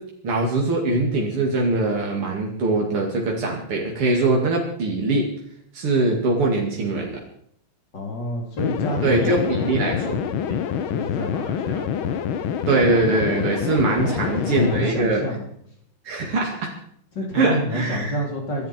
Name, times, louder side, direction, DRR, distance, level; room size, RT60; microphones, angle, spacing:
voice 1, 0.2-5.3 5.7-7.2 9.0-10.2 12.7-15.2 16.1-16.7 17.3-18.2, right 2 dB, 90° right, -1 dB, 3.5 m, -22 dB
voice 2, 7.9-12.2 14.0-15.5 17.1-18.7, equal, 55° left, 0 dB, 4.1 m, -30 dB
sound 1, 8.6-14.9, left 8 dB, 70° left, 1.8 m, -26 dB
26.0 x 11.5 x 4.5 m, 0.67 s
omnidirectional pair, 2.4 m